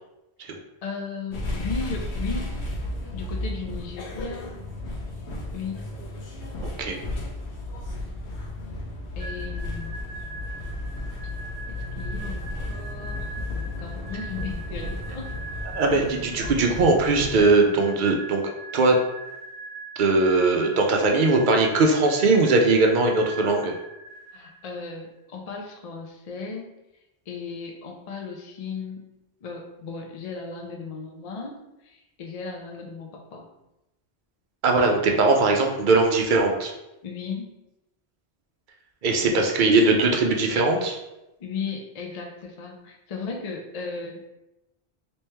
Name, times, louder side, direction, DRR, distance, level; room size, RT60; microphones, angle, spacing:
voice 1, 0.8-2.5 3.1-4.5 5.5-5.8 9.2-10.0 11.7-13.3 13.6-15.4 15.9-16.1 24.3-26.7 27.3-29.0 29.4-33.5 37.0-37.5 39.3-39.5 41.4-44.3, left 4 dB, 50° left, 1 dB, 0.5 m, -36 dB
sound 1, 1.3-17.5, left 1 dB, 80° left, 1.0 m, -33 dB
sound 2, 9.2-24.8, right 3 dB, 85° right, 0.9 m, -41 dB
voice 2, 15.7-18.4 18.7-19.0 20.0-23.7 34.6-36.7 39.0-41.0, right 3 dB, 55° right, 2 dB, 0.6 m, -20 dB
3.0 x 3.0 x 3.3 m, 0.93 s
omnidirectional pair, 1.1 m